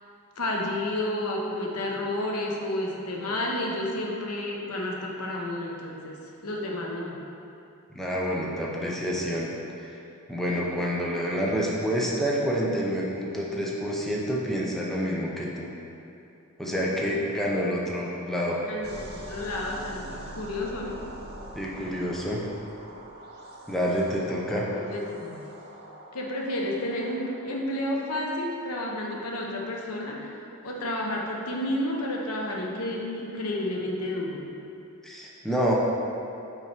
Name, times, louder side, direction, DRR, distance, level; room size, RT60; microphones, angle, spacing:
voice 1, 0.4-7.2 16.6-17.2 18.6-21.0 24.7-25.5 26.1-34.5, left 1 dB, 85° left, -1 dB, 0.9 m, -31 dB
voice 2, 7.9-9.5 9.8-10.0 10.3-15.7 16.6-18.6 21.5-22.4 23.7-24.7 35.0-35.7, equal, ahead, -5 dB, 0.6 m, -28 dB
sound 1, 18.8-27.4, right 1 dB, 45° right, 0.7 m, -44 dB
5.7 x 4.5 x 4.5 m, 2.7 s
head